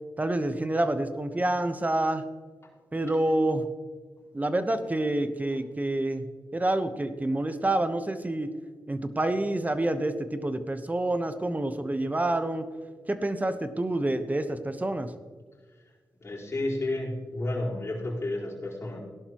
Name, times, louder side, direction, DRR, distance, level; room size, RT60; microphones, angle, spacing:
voice 1, 0.2-2.2 2.9-3.7 4.3-6.2 6.5-8.5 8.9-12.7 13.1-15.1, right 1 dB, 20° right, 9 dB, 1.1 m, -27 dB
voice 2, 16.2-19.0, left 2 dB, 40° left, -5 dB, 4.5 m, -31 dB
17.0 x 11.5 x 3.1 m, 1.5 s
cardioid pair, 70°, 7 cm